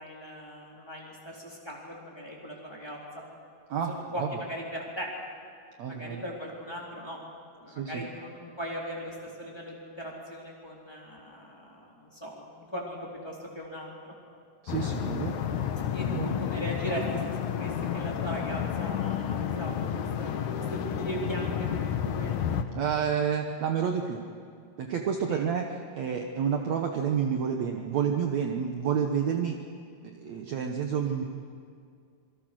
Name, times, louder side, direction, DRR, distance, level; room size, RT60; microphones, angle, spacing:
voice 1, 0.0-3.0 3.9-5.1 5.9-7.2 7.6-14.1 15.9-22.5 25.3-25.5, equal, 5° left, -3 dB, 3.8 m, -39 dB
voice 2, 3.7-4.3 5.8-6.2 7.7-8.0 14.6-15.4 16.1-16.4 22.8-24.2 24.8-29.6 30.0-31.2, right 7 dB, 60° right, 3 dB, 2.2 m, -29 dB
sound 1, 14.7-22.6, left 8 dB, 65° left, 2.4 m, -31 dB
26.5 x 24.0 x 6.4 m, 2.2 s
omnidirectional pair, 3.9 m